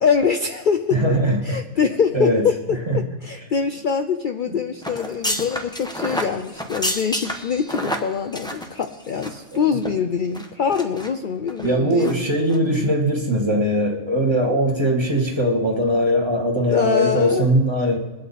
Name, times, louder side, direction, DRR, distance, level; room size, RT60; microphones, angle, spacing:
voice 1, 0.0-1.0 1.4-12.1 16.7-17.5, left 6 dB, 70° left, 6 dB, 0.4 m, -24 dB
voice 2, 0.9-1.6 2.1-2.5 2.9-3.0 9.5-9.6 11.6-18.0, equal, 20° right, 0 dB, 1.7 m, -20 dB
sound 1, 4.8-9.5 9.8-9.9 10.3-11.1 11.5-11.7 12.0-12.2 12.5-12.6, equal, 5° left, 1.0 m, -29 dB
22.0 x 8.6 x 4.2 m, 1.1 s
omnidirectional pair, 1.6 m